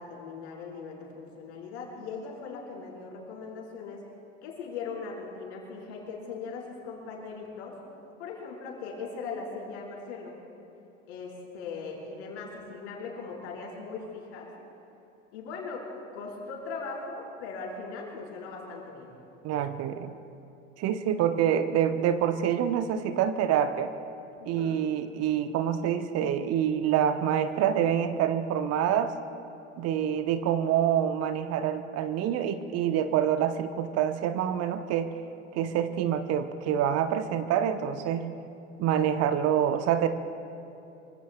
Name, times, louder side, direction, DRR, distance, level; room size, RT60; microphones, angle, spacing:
voice 1, 0.0-4.0 4.4-7.7 8.2-10.4 11.0-14.5 15.3-15.9 16.1-19.1 24.4-24.8 30.0-30.1, left 4 dB, 60° left, -3 dB, 4.4 m, -39 dB
voice 2, 19.4-20.1 20.8-23.9 24.4-29.1 29.8-35.1 35.5-38.3 38.8-40.1, right 9 dB, 40° right, 10 dB, 0.9 m, -26 dB
25.0 x 24.5 x 2.3 m, 2.8 s
figure-of-eight pair, 70°, 37 cm